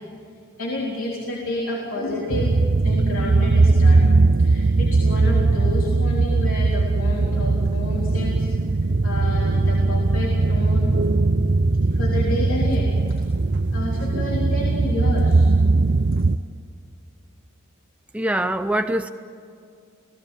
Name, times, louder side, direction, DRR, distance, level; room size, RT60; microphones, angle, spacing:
voice 1, 0.6-2.6 2.8-4.0 4.4-8.5 8.8-10.9 11.9-12.9 13.7-15.5, left 2 dB, 75° left, -3 dB, 3.8 m, -30 dB
sound 1, 2.3-16.4, right 3 dB, 50° right, 0.6 m, -19 dB
voice 2, 18.1-19.1, right 1 dB, 5° right, 7 dB, 0.5 m, -23 dB
30.0 x 18.0 x 9.2 m, 2.3 s
head